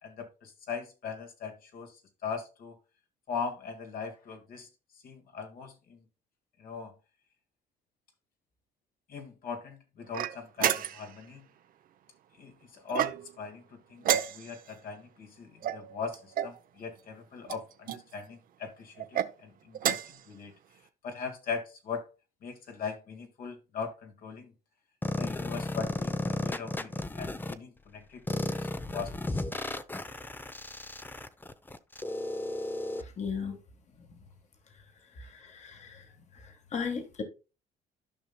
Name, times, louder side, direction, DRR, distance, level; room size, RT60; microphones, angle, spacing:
voice 1, 0.0-2.8 3.3-4.7 5.0-6.0 6.6-6.9 9.1-11.4 12.4-20.5 21.0-22.1 22.4-24.5 25.2-29.4, left 5 dB, 60° left, 1.8 m, -40 dB
sound 1, 10.1-11.2 12.9-13.5 14.0-14.7 15.6-16.6 17.4-18.0 19.0-19.3 19.7-20.2, right 10 dB, 55° right, 0.7 m, -31 dB
sound 2, 25.0-27.5 28.3-33.0, left 2 dB, 10° left, 0.6 m, -34 dB
voice 2, 33.0-33.6 35.1-36.0 36.3-37.2, left 6 dB, 40° left, 1.7 m, -37 dB
13.5 x 5.5 x 2.3 m
cardioid pair, 110°, 17 cm